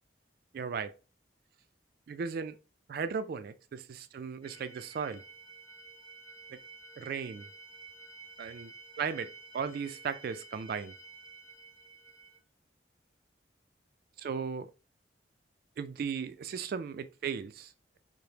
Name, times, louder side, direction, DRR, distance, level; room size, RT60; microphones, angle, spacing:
voice 1, 0.5-0.9 2.1-2.6 2.9-5.2 6.5-6.6 7.0-7.5 8.4-8.7 9.0-10.9 14.2-14.7 15.8-18.0, right 6 dB, 55° right, 0.3 m, -36 dB
sound 1, 4.4-12.4, right 3 dB, 15° left, 0.8 m, -51 dB
4.8 x 2.0 x 2.8 m
head